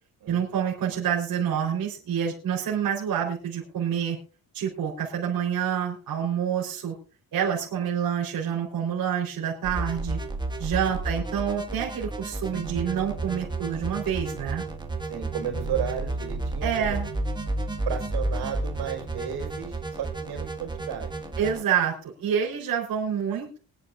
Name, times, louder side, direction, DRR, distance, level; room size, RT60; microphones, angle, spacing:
voice 1, 0.3-4.2 4.5-6.9 7.3-10.2 10.6-14.6 16.6-17.1 21.4-21.9 22.2-23.6, right 8 dB, 65° right, -3 dB, 3.9 m, -27 dB
sound 1, 9.6-21.6, right 2 dB, 10° right, 1.7 m, -32 dB
sound 2, 12.5-19.7, right 4 dB, 30° left, 3.9 m, -43 dB
voice 2, 15.0-17.0 17.8-21.4, right 8 dB, 80° right, 3 dB, 4.9 m, -34 dB
24.5 x 10.0 x 2.5 m, 0.35 s
cardioid pair, 155°, 38 cm